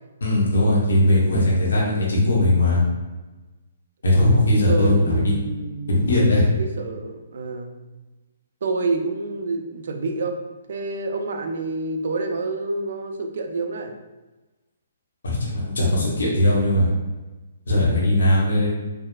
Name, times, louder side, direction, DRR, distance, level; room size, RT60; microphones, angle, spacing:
voice 1, 0.2-2.8 4.0-5.3 5.9-6.4 15.2-16.9 17.7-18.7, left 1 dB, 65° left, -5 dB, 1.4 m, -19 dB
voice 2, 4.7-6.1 6.4-7.7 8.6-10.4 10.7-13.9, right 3 dB, 60° right, 5 dB, 0.5 m, -28 dB
4.5 x 3.4 x 2.3 m, 1.2 s
figure-of-eight pair, 130°, 0 cm